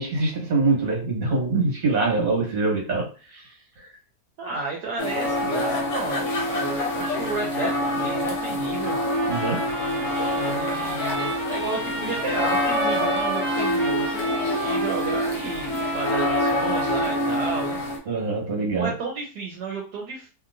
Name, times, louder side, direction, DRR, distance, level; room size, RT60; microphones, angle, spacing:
voice 1, 0.0-3.4 3.8-3.9 9.3-9.7 10.1-10.3 18.1-18.9, right 3 dB, 60° right, -1 dB, 1.6 m, -24 dB
voice 2, 4.4-9.0 10.4-17.8 18.7-20.3, right 3 dB, 80° right, -1 dB, 1.2 m, -32 dB
sound 1, 5.0-18.0, left 1 dB, 55° left, 1.0 m, -26 dB
Trumpet, 8.8-17.4, right 2 dB, 30° right, 0.6 m, -33 dB
2.9 x 2.8 x 2.5 m, 0.36 s
omnidirectional pair, 1.7 m